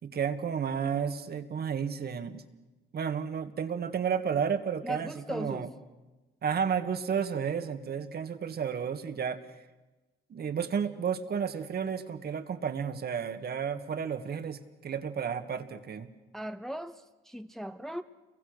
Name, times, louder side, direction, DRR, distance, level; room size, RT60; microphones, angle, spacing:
voice 1, 0.0-2.4 2.9-5.7 6.4-9.4 10.3-16.1, right 7 dB, 55° right, 8 dB, 1.7 m, -32 dB
voice 2, 4.8-5.7 16.3-18.0, equal, ahead, 9 dB, 0.7 m, -38 dB
29.0 x 23.0 x 6.6 m, 1.2 s
cardioid pair, 90°, 20 cm